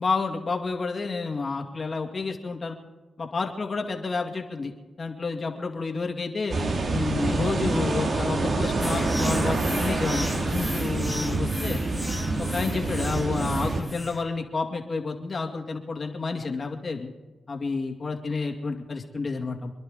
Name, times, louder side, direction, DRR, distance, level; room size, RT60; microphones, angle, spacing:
voice 1, 0.0-2.7 3.2-4.7 5.0-6.6 6.9-11.8 12.4-17.1 17.5-19.7, left 4 dB, 50° left, 2 dB, 2.3 m, -30 dB
sound 1, 6.5-13.8, right 2 dB, 60° right, 2.1 m, -27 dB
sound 2, 8.8-14.3, equal, ahead, 1.4 m, -36 dB
27.5 x 10.5 x 3.8 m, 1.2 s
cardioid pair, 55°, 0 cm